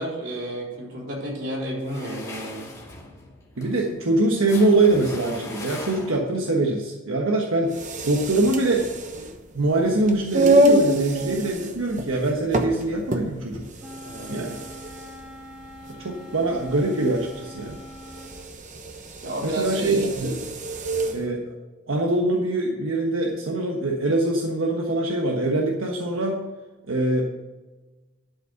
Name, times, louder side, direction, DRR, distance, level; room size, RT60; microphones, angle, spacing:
voice 1, 0.0-2.7 14.0-14.4 19.2-20.4 20.9-21.1, right 1 dB, 60° right, -3 dB, 3.8 m, -32 dB
sound 1, 1.8-6.4, left 2 dB, 15° left, 2.4 m, -39 dB
voice 2, 3.6-7.8 8.1-8.9 9.2-9.3 9.5-13.7 14.3-14.6 15.9-17.8 19.4-20.4 21.1-21.5 21.9-26.4 26.9-27.3, right 2 dB, 85° right, 0 dB, 1.2 m, -23 dB
sound 2, 7.6-21.2, right 1 dB, 35° right, 0.9 m, -26 dB
Wind instrument woodwind instrument, 13.8-18.4, equal, ahead, 2.1 m, -43 dB
11.5 x 5.2 x 6.9 m, 1.2 s
head